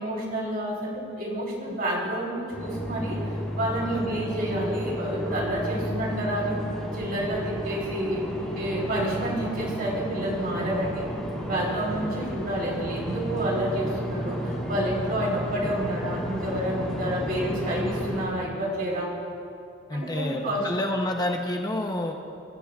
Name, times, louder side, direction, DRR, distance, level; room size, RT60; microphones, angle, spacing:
voice 1, 0.0-3.2 3.6-6.6 6.9-8.2 8.5-11.1 11.5-19.1 19.9-20.7, right 1 dB, 55° right, -3 dB, 4.0 m, -29 dB
sound 1, 2.5-18.2, equal, 5° left, 3.3 m, -33 dB
voice 2, 19.9-22.1, left 1 dB, 20° left, 2 dB, 0.8 m, -29 dB
25.5 x 13.0 x 2.4 m, 2.5 s
head